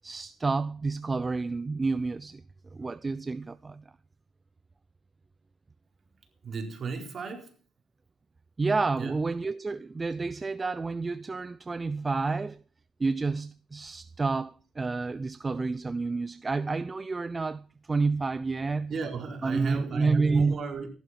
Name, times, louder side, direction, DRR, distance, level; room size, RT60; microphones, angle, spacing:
voice 1, 0.0-2.4 2.7-3.8 8.6-12.6 13.0-18.9 19.4-20.6, right 3 dB, 25° right, 0.6 m, -29 dB
voice 2, 6.4-7.6 9.0-9.1 18.9-20.9, right 4 dB, 50° right, 4.6 m, -33 dB
15.0 x 12.0 x 6.0 m
cardioid pair, 90°, 0 cm